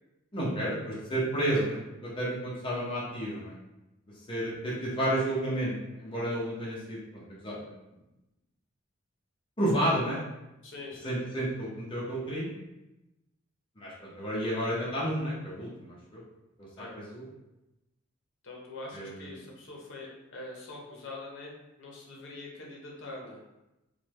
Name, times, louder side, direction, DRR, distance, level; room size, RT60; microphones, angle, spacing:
voice 1, 0.3-3.5 4.3-7.7 9.6-10.2 11.0-12.5 13.8-16.2 16.8-17.2 18.9-19.1, right 1 dB, 25° left, -7 dB, 0.7 m, -31 dB
voice 2, 10.6-11.1 16.8-16.9 18.4-21.5 21.8-23.4, left 2 dB, 65° left, -2 dB, 0.7 m, -43 dB
3.1 x 2.1 x 3.0 m, 0.96 s
head